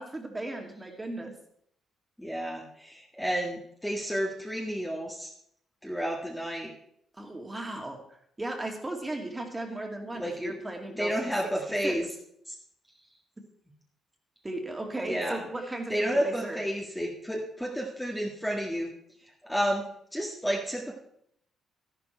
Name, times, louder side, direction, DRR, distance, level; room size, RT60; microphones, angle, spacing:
voice 1, 0.0-1.3 7.2-8.0 8.4-11.3 11.8-12.0 14.4-16.6, right 2 dB, 15° right, 2 dB, 2.4 m, -36 dB
voice 2, 2.2-5.3 5.8-6.7 10.2-10.5 11.0-12.1 12.5-12.6 15.0-15.4 15.9-18.9 19.2-19.9 20.1-21.0, equal, 5° left, -1 dB, 1.8 m, -31 dB
12.0 x 11.5 x 4.5 m, 0.71 s
cardioid pair, 100°, 0 cm